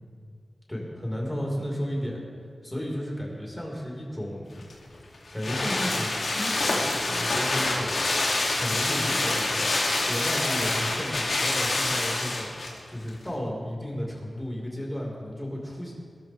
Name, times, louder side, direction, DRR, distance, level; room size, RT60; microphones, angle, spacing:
voice 1, 0.7-2.2 2.6-4.5 5.3-7.9 8.5-9.7 10.0-12.5 12.9-15.9, equal, 10° left, -3 dB, 4.8 m, -33 dB
sound 1, 4.6-12.8 13.1-13.2, left 2 dB, 75° left, 2.8 m, -26 dB
21.0 x 13.5 x 3.5 m, 2.1 s
cardioid pair, 55°, 0 cm